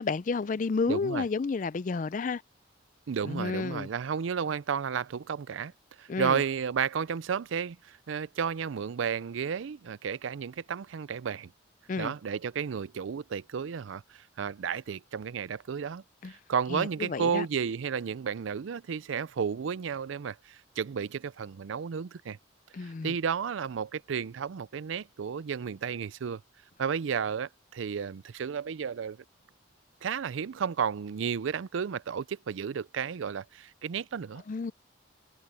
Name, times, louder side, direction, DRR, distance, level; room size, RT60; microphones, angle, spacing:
voice 1, 0.0-2.4 3.2-3.9 6.1-6.4 11.9-12.1 16.2-16.3 16.7-17.5 22.7-23.1 34.5-34.7, left 4 dB, 40° left, 0.4 m, -31 dB
voice 2, 0.9-1.2 3.1-5.7 6.0-11.5 12.0-22.4 22.8-26.4 26.8-29.2 30.0-34.4, right 7 dB, 85° right, 0.4 m, -32 dB
head